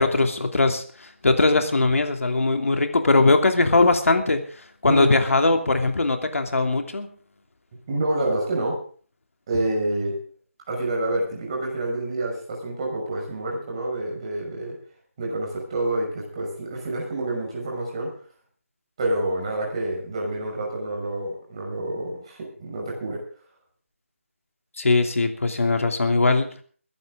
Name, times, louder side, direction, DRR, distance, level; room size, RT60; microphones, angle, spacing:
voice 1, 0.0-4.4 4.8-7.1 24.8-26.5, left 3 dB, 70° left, 6 dB, 2.8 m, -20 dB
voice 2, 7.9-8.8 9.5-10.2 10.7-14.7 15.2-18.1 19.0-23.2, right 1 dB, 25° right, -1 dB, 5.9 m, -28 dB
22.5 x 11.5 x 3.7 m, 0.43 s
figure-of-eight pair, 175°, 8 cm